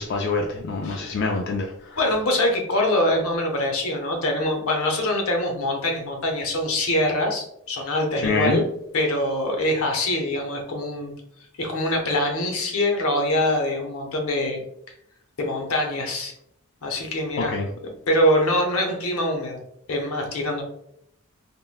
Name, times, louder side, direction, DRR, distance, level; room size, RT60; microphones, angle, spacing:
voice 1, 0.0-2.0 8.2-8.6 17.4-17.7, left 3 dB, 55° left, 0 dB, 0.3 m, -25 dB
voice 2, 0.8-1.2 2.0-8.6 8.9-11.1 11.6-14.6 15.4-16.3 16.8-17.5 18.1-19.6 19.9-20.6, left 1 dB, 80° left, 2 dB, 0.7 m, -24 dB
3.5 x 2.1 x 2.3 m, 0.75 s
head